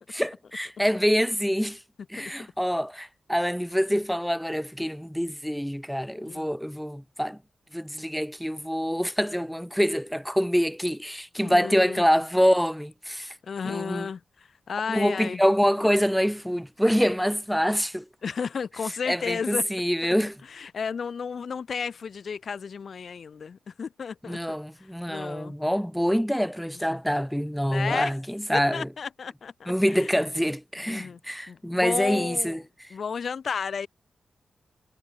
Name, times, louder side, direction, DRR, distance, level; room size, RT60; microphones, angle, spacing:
voice 1, 0.1-1.8 2.1-7.4 7.7-13.3 13.6-14.1 14.9-18.1 19.1-20.4 24.3-28.9 29.7-32.9, equal, ahead, 3.5 m, -26 dB
voice 2, 11.4-12.1 13.2-15.4 18.2-19.7 20.5-24.6 25.1-25.5 27.7-28.1 28.5-30.1 30.9-31.2 31.5-32.6 32.9-33.9, left 6 dB, 70° left, 3.2 m, -33 dB
cardioid pair, 60°, 0 cm